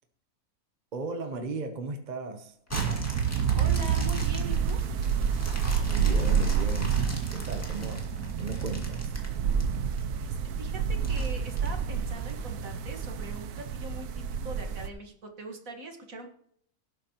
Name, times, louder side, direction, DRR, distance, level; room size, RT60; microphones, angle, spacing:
voice 1, 0.9-2.5 5.9-6.9 7.3-8.1 8.4-9.1, right 3 dB, 35° right, 6 dB, 1.0 m, -36 dB
sound 1, 2.7-10.0 10.5-10.6 11.0-12.3 12.9-13.0, equal, 10° left, 2.1 m, -42 dB
sound 2, 2.7-14.9, right 7 dB, 90° right, 1.3 m, -28 dB
voice 2, 3.6-4.8 10.1-16.3, right 2 dB, 65° right, 4 dB, 2.1 m, -42 dB
17.5 x 8.4 x 3.0 m, 0.66 s
omnidirectional pair, 1.6 m